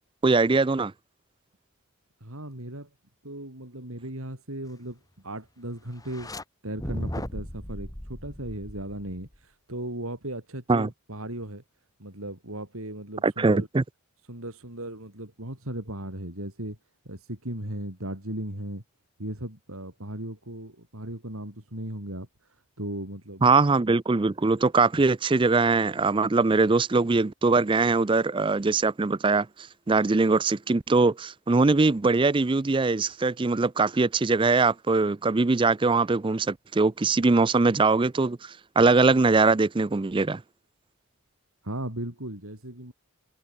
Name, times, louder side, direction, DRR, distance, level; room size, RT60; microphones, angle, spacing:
voice 1, 0.2-0.9 10.7-10.9 13.2-13.8 23.4-29.5 29.9-40.4, right 3 dB, 20° right, 0.4 m, -22 dB
voice 2, 2.2-2.9 3.2-6.3 6.6-11.6 12.0-13.7 14.3-16.8 17.1-18.8 19.2-22.3 22.8-23.4 41.6-42.9, right 1 dB, 70° right, 5.4 m, -37 dB
sound 1, 6.0-6.4 6.8-9.3, left 1 dB, 15° left, 2.7 m, -36 dB
head